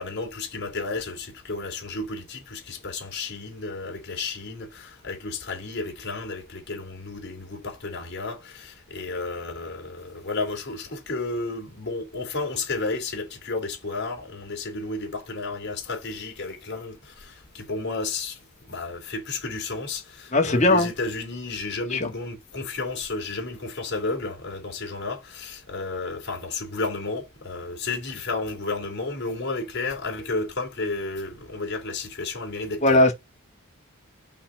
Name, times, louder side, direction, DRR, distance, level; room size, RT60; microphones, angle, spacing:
voice 1, 0.0-33.0, left 3 dB, 50° left, 2.6 m, -32 dB
voice 2, 20.3-20.9 21.9-22.1 32.8-33.1, left 2 dB, 35° left, 1.6 m, -18 dB
5.7 x 3.9 x 5.9 m
head